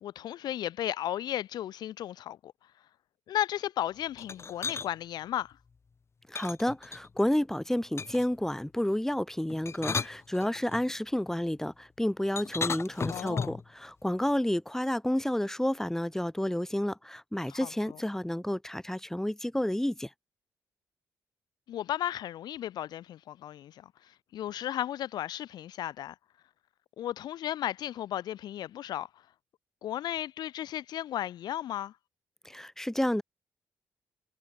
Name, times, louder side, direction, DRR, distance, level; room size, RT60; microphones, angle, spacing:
voice 1, 0.0-2.5 3.3-5.6 13.1-13.6 17.5-18.0 21.7-26.2 27.0-29.2 29.8-31.9, left 12 dB, 70° left, 0.7 m, -35 dB
sound 1, 4.2-4.9 6.3-7.3 8.0-8.4 9.5-10.8 12.4-13.7, left 5 dB, 35° left, 1.0 m, -35 dB
voice 2, 6.3-20.1 32.4-33.2, left 1 dB, 5° left, 1.0 m, -30 dB
supercardioid pair, 55°, 7 cm